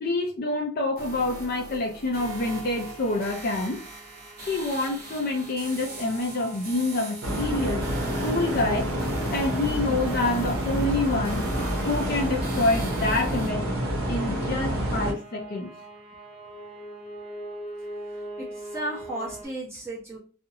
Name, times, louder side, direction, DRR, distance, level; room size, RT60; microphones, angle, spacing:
voice 1, 0.0-3.8 4.4-7.8 8.2-8.9 9.3-11.4 11.9-13.7 14.1-15.7, left 2 dB, 45° left, 2 dB, 0.4 m, -27 dB
sound 1, 1.0-13.5, right 3 dB, 45° right, 0.9 m, -42 dB
sound 2, 1.8-19.5, right 1 dB, 10° left, 1.1 m, -43 dB
sound 3, 7.2-15.1, equal, 75° right, 0.7 m, -28 dB
voice 2, 18.4-20.2, right 1 dB, 10° right, -6 dB, 0.8 m, -34 dB
2.5 x 2.0 x 2.6 m, 0.39 s
head